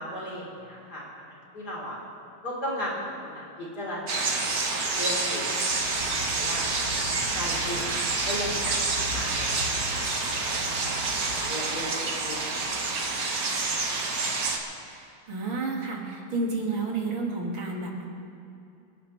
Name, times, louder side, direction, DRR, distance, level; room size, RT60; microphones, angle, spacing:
voice 1, 0.0-1.9 2.4-4.4 4.7-6.6 7.4-10.1 10.5-12.6, equal, 50° left, -5 dB, 4.9 m, -37 dB
sound 1, 4.1-14.6, right 3 dB, 45° right, 1.7 m, -28 dB
sound 2, 5.7-11.5, left 2 dB, 70° left, 2.5 m, -39 dB
voice 2, 14.8-18.1, right 3 dB, 70° right, -2 dB, 3.2 m, -31 dB
27.0 x 12.5 x 3.4 m, 2.5 s
omnidirectional pair, 2.3 m